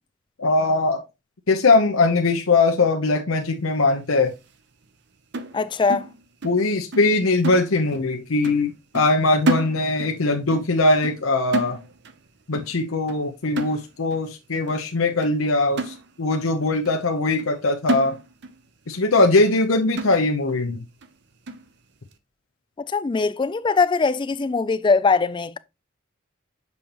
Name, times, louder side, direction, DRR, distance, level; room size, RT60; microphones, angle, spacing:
voice 1, 0.4-1.0 1.5-4.3 6.4-11.8 12.5-18.2 18.9-20.8, left 3 dB, 90° left, 0.9 m, -21 dB
sound 1, 5.3-6.7 6.9-7.2 7.4-8.1 8.4-8.7 9.0-10.2 10.5-10.7 11.0-12.2 12.5-12.8 13.1-13.3 13.6-14.2 14.7-14.8 15.2-15.4 15.8-16.5 16.9-17.0 17.4-17.6 17.9-18.6 18.9-19.0 19.5-19.6 20.0-20.5 21.0-21.1 21.5-21.7, right 2 dB, 60° right, 0.7 m, -30 dB
voice 2, 5.5-6.0 22.8-25.6, left 4 dB, 25° left, 0.3 m, -21 dB
7.1 x 5.3 x 2.9 m
head